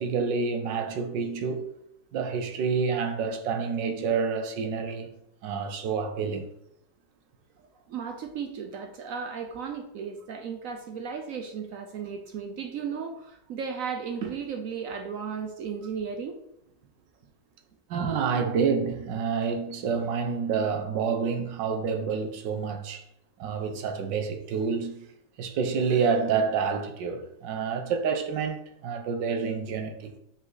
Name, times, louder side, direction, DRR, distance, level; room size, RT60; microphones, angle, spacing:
voice 1, 0.0-1.7 2.1-5.1 5.4-6.5 17.9-23.0 23.4-25.1 25.4-30.1, right 5 dB, 80° right, 1.5 m, -28 dB
voice 2, 7.9-16.4, right 6 dB, 65° right, 0.8 m, -35 dB
5.5 x 5.1 x 3.9 m
omnidirectional pair, 1.9 m